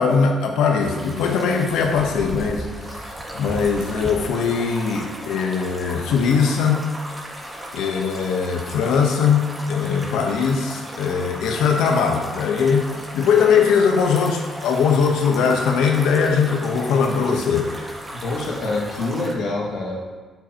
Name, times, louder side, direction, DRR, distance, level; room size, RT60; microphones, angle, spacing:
voice 1, 0.0-6.9 7.7-17.7, left 6 dB, 90° left, 3 dB, 1.1 m, -20 dB
sound 1, 0.8-19.3, right 1 dB, 20° right, 1.8 m, -36 dB
voice 2, 18.1-20.0, left 2 dB, 70° left, -3 dB, 2.0 m, -26 dB
9.1 x 8.0 x 3.0 m, 1.4 s
cardioid pair, 90°, 0 cm